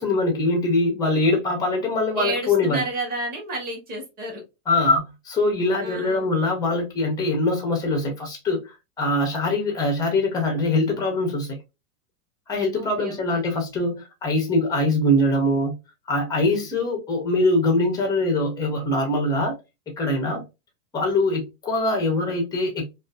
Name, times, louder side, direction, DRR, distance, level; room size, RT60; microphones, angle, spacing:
voice 1, 0.0-2.8 4.7-11.6 12.5-15.7 16.1-19.6 20.0-20.4 20.9-22.8, left 2 dB, 10° left, 0.4 m, -23 dB
voice 2, 2.1-4.4 5.8-6.3 12.7-13.5, right 2 dB, 20° right, 0.9 m, -31 dB
2.5 x 2.3 x 2.2 m
supercardioid pair, 135°, 48 cm